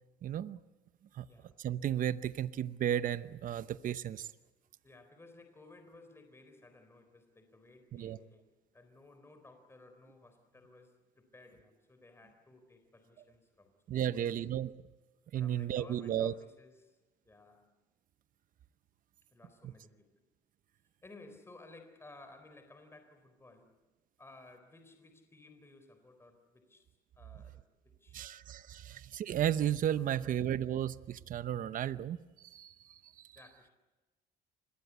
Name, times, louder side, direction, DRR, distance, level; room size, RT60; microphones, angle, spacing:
voice 1, 0.2-0.6 1.2-1.3 1.6-4.3 7.9-8.2 13.9-14.7 15.3-16.3 28.1-32.2 32.5-32.7 33.0-33.1, right 10 dB, 55° right, 14 dB, 0.9 m, -33 dB
voice 2, 4.8-8.5 8.7-14.4 15.3-17.0 17.2-17.7 19.3-20.1 21.0-23.7 24.2-26.9 27.1-28.3 28.7-28.9 30.0-30.3 33.4-33.7, left 2 dB, 15° left, 7 dB, 4.0 m, -57 dB
26.0 x 21.0 x 8.3 m, 1.1 s
cardioid pair, 110°, 17 cm